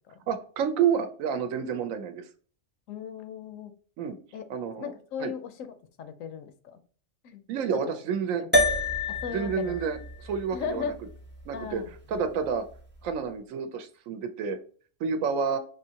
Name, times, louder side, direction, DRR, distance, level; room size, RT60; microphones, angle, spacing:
voice 1, 0.3-2.2 4.0-4.2 4.5-4.9 5.2-5.3 7.5-8.4 9.3-10.9 11.5-11.8 12.1-12.6 13.0-14.6 15.0-15.6, right 6 dB, 75° right, 8 dB, 1.0 m, -29 dB
voice 2, 2.9-3.7 4.3-4.4 4.8-5.5 6.0-6.8 7.2-7.4 7.8-7.9 8.4-8.5 9.1-9.8 10.5-10.9 11.5-11.9, left 6 dB, 75° left, 10 dB, 0.9 m, -36 dB
sound 1, 8.5-13.1, left 1 dB, 15° right, 0.4 m, -30 dB
5.4 x 2.7 x 2.8 m, 0.43 s
omnidirectional pair, 1.4 m